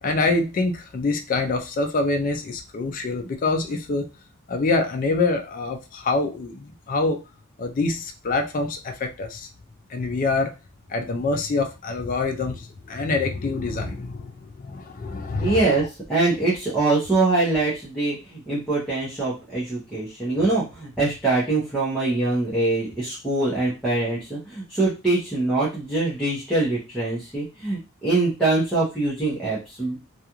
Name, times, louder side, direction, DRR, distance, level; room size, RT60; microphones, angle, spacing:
voice 1, 0.0-4.1 4.5-7.2 7.6-9.5 9.9-10.5 10.9-15.9, left 3 dB, 40° left, 5 dB, 0.4 m, -25 dB
voice 2, 15.4-30.0, right 2 dB, ahead, -8 dB, 0.7 m, -23 dB
2.4 x 2.3 x 2.9 m, 0.29 s
head